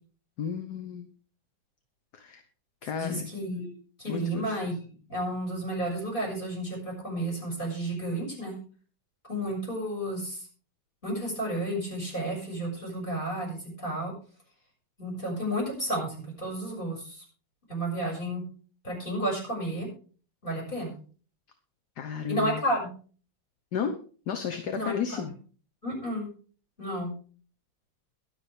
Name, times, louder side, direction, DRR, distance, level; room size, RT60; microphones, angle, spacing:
voice 1, 0.4-1.1 2.1-2.4 2.8-3.3 4.1-4.5 22.0-22.6 23.7-24.0 24.3-25.3, left 7 dB, 60° left, 7 dB, 1.6 m, -33 dB
voice 2, 3.0-8.5 9.2-10.4 11.0-14.1 15.0-17.2 17.7-18.4 18.8-19.9 20.4-20.9 22.3-22.9 24.7-25.2 25.8-26.3 26.8-27.1, right 1 dB, 25° left, 0 dB, 6.8 m, -32 dB
22.5 x 7.5 x 3.5 m, 0.40 s
omnidirectional pair, 2.1 m